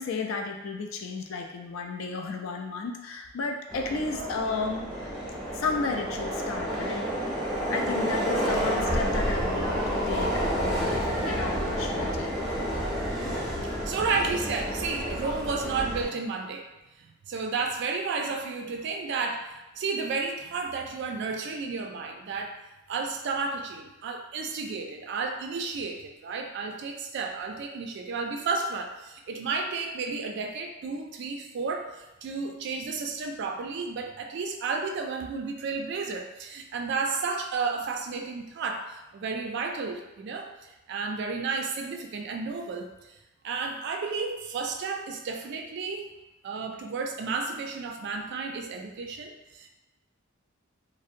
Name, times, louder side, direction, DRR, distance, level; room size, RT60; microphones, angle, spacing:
voice 1, 0.0-4.9 5.5-7.1 7.7-12.3 13.3-13.4, left 4 dB, 75° left, 3 dB, 0.4 m, -33 dB
Subway metro underground, 3.7-16.1, equal, ahead, 0.7 m, -30 dB
voice 2, 13.9-16.7 17.0-22.6 22.9-43.1 43.4-46.1 46.4-49.7, right 4 dB, 60° right, 4 dB, 0.3 m, -32 dB
2.6 x 2.0 x 2.5 m, 0.99 s
head